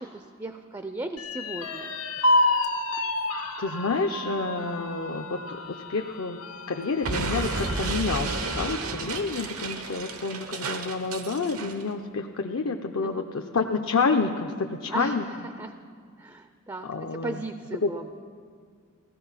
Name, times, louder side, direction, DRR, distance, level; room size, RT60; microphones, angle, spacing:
voice 1, 0.0-2.0 13.0-13.3 14.9-15.7 16.2-18.1, right 2 dB, 15° right, 8 dB, 0.4 m, -37 dB
sound 1, 1.2-8.8 9.3-9.4 9.8-10.4, left 2 dB, 90° left, 1.1 m, -30 dB
voice 2, 3.6-6.4 6.7-15.2 16.8-17.4 17.8-17.9, left 4 dB, 65° left, 4 dB, 0.6 m, -29 dB
Explosion, 7.0-11.8, right 3 dB, 85° right, 1.0 m, -32 dB
16.0 x 14.0 x 5.7 m, 2.1 s
head